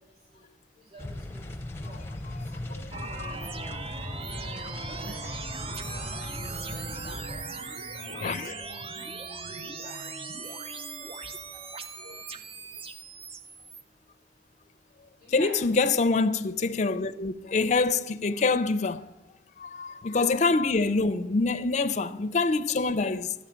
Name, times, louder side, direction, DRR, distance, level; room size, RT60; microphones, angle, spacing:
voice 1, 0.9-1.5 1.8-2.0 2.7-3.8 4.3-4.5 4.8-5.4 5.8-10.1 10.4-10.6 11.0-11.1 11.5-11.6 12.0-12.1 15.2-15.5, right 1 dB, 55° right, 4.8 m, -49 dB
sound 1, 1.0-7.4, left 1 dB, 15° left, 0.7 m, -38 dB
sound 2, 2.9-13.8, right 4 dB, 30° right, 0.5 m, -39 dB
voice 2, 8.1-8.5 12.0-12.1 15.3-19.1 19.6-23.3, left 3 dB, 40° left, 0.5 m, -26 dB
12.0 x 7.4 x 7.3 m
head